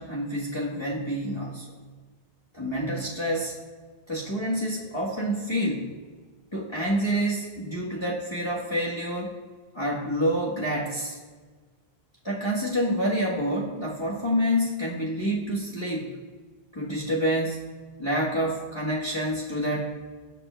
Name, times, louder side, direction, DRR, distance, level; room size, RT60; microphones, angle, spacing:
voice 1, 0.0-1.7 2.5-3.5 4.1-5.9 6.5-9.4 9.7-11.2 12.2-16.1 16.7-17.6 18.0-19.9, equal, 25° left, -6 dB, 1.2 m, -28 dB
17.5 x 7.2 x 2.2 m, 1.4 s
omnidirectional pair, 1.0 m